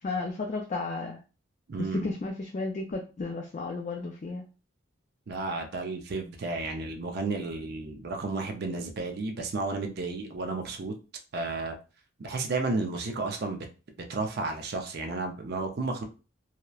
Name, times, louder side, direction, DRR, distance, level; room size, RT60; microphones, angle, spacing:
voice 1, 0.0-1.2 1.8-4.4, left 3 dB, 35° left, 1 dB, 0.3 m, -33 dB
voice 2, 1.7-2.1 5.3-10.9 11.3-11.8 12.2-13.7 14.1-16.0, right 3 dB, 50° right, 4 dB, 0.4 m, -32 dB
2.8 x 2.0 x 2.3 m, 0.32 s
head